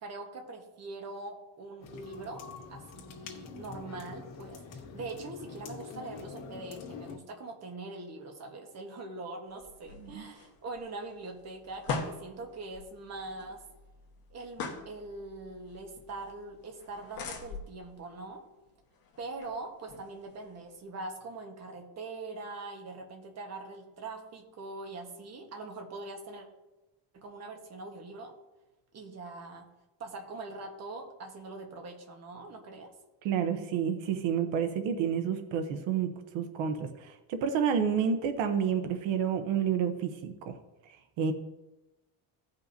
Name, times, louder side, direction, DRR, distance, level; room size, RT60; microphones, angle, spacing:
voice 1, 0.0-2.4 2.7-13.6 14.3-18.4 19.2-26.5 27.1-28.3 28.9-29.7 30.0-32.9, right 3 dB, 35° right, 2 dB, 1.3 m, -42 dB
sound 1, 1.8-7.2, left 5 dB, 90° left, 1.6 m, -45 dB
sound 2, 9.5-20.8, left 4 dB, 50° left, 1.5 m, -44 dB
voice 2, 33.2-40.3 41.2-41.3, right 7 dB, 80° right, 7 dB, 0.9 m, -29 dB
16.5 x 5.5 x 2.7 m, 1.0 s
cardioid pair, 170°, 45 cm